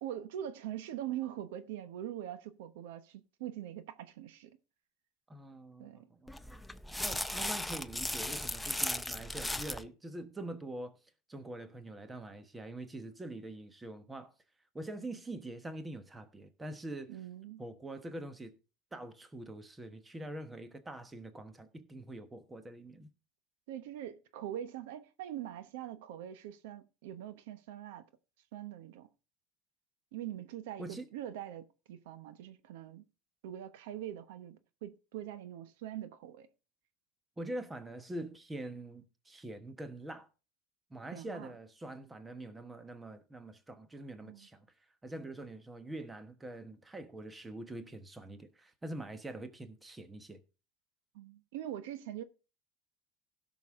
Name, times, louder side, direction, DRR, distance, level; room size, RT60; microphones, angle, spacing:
voice 1, 0.0-4.5 5.8-6.1 17.1-17.6 23.7-28.0 28.5-29.1 30.1-33.0 33.4-36.5 41.1-41.5 44.2-44.5 51.1-52.2, right 11 dB, 85° right, 1.0 m, -43 dB
voice 2, 5.3-6.5 7.0-11.0 11.3-14.3 14.7-17.1 17.6-18.5 18.9-23.1 30.8-31.1 37.4-40.3 40.9-44.7 45.0-50.4, right 1 dB, 10° right, 1.2 m, -44 dB
sound 1, 6.3-9.8, left 1 dB, 5° left, 0.5 m, -36 dB
16.0 x 6.2 x 3.7 m
supercardioid pair, 140°, 0 cm